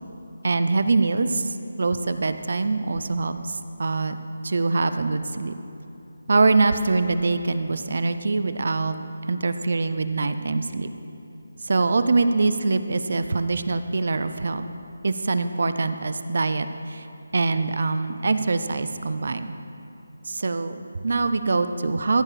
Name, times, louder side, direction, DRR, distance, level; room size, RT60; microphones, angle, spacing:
voice 1, 0.4-4.2 4.4-5.5 6.3-9.0 9.3-10.9 11.6-14.6 15.0-17.1 17.3-19.5 20.3-22.2, right 3 dB, 55° right, 10 dB, 0.5 m, -24 dB
14.5 x 7.4 x 4.9 m, 2.9 s
figure-of-eight pair, 170°, 0 cm